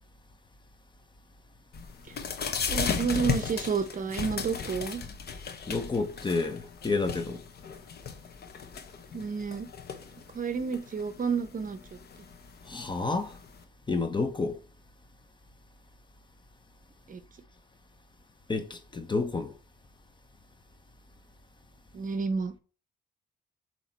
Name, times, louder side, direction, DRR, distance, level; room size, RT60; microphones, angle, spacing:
sound 1, 1.7-13.6, left 6 dB, 55° left, 1.0 m, -36 dB
voice 1, 2.7-5.0 9.1-9.7 10.3-11.8 17.1-17.2 21.9-22.5, right 5 dB, 45° right, 0.8 m, -30 dB
voice 2, 5.7-7.4 12.7-13.4 13.9-14.6 18.5-19.6, left 3 dB, 25° left, 0.8 m, -30 dB
7.0 x 3.0 x 4.5 m
cardioid pair, 90°, 20 cm